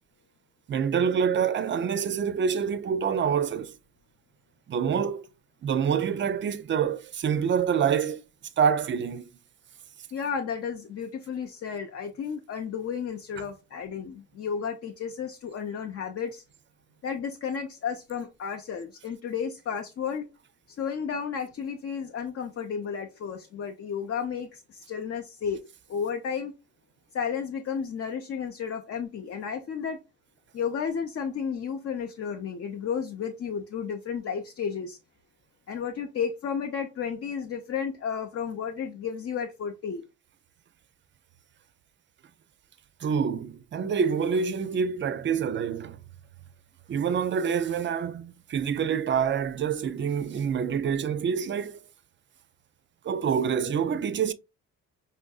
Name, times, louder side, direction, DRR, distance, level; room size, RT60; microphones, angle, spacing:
voice 1, 0.7-3.7 4.7-5.3 5.6-8.2 8.6-9.3 43.0-46.0 46.9-51.8 53.0-54.3, right 7 dB, 40° right, 0.4 m, -26 dB
voice 2, 10.1-16.4 17.0-20.3 20.8-25.6 25.9-26.5 27.1-30.0 30.5-35.0 35.7-40.0, left 7 dB, 50° left, 0.6 m, -32 dB
5.4 x 2.5 x 2.3 m
cardioid pair, 90°, 30 cm